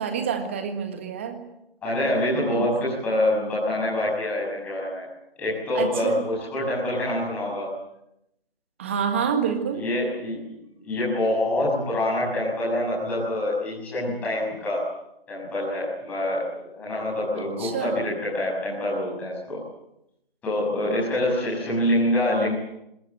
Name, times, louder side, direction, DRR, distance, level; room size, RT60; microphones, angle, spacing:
voice 1, 0.0-1.4 2.4-2.7 5.7-6.2 8.8-9.9 17.6-17.9 20.8-21.0 22.3-22.5, right 7 dB, 15° right, 6 dB, 1.7 m, -28 dB
voice 2, 1.8-5.0 5.4-7.7 9.7-10.4 10.8-14.9 15.3-19.6 20.4-22.5, left 1 dB, 5° left, -6 dB, 6.7 m, -26 dB
28.5 x 22.0 x 7.7 m, 0.84 s
figure-of-eight pair, 165°, 30 cm